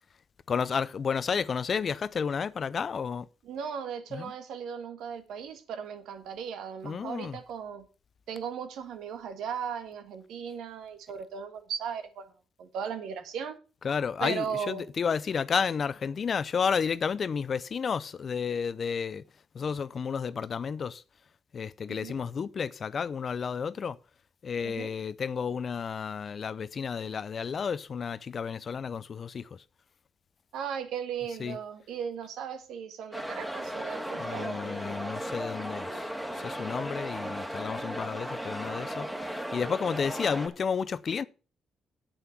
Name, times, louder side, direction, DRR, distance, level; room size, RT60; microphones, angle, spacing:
voice 1, 0.5-3.3 4.1-4.3 6.8-7.4 13.8-19.2 19.5-21.0 21.5-24.0 24.4-29.6 31.4-31.6 34.2-39.1 39.5-41.2, left 6 dB, 45° left, 0.6 m, -31 dB
voice 2, 3.4-7.9 8.3-12.3 12.6-13.6 14.2-14.9 21.9-22.2 24.6-24.9 30.5-34.6, right 7 dB, 80° right, 1.7 m, -37 dB
sound 1, 33.1-40.5, equal, 5° right, 1.9 m, -36 dB
8.0 x 7.9 x 5.8 m
cardioid pair, 90°, 0 cm